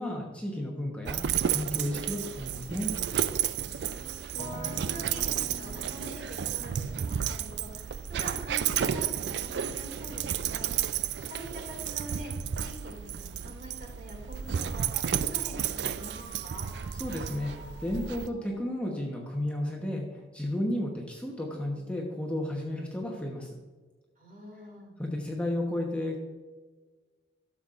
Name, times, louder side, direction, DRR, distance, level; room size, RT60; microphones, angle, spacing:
voice 1, 0.0-2.9 17.0-23.6 25.0-26.2, left 1 dB, 5° left, -1 dB, 1.0 m, -33 dB
Dog, 1.1-18.3, right 9 dB, 65° right, 0.3 m, -32 dB
voice 2, 3.5-16.7 24.2-25.0, equal, 45° right, 0 dB, 2.4 m, -45 dB
sound 1, 4.3-15.4 15.7-16.4, equal, 40° left, 1.6 m, -49 dB
sound 2, 16.0-19.9, left 1 dB, 80° left, 1.6 m, -53 dB
13.0 x 7.2 x 2.5 m, 1.3 s
head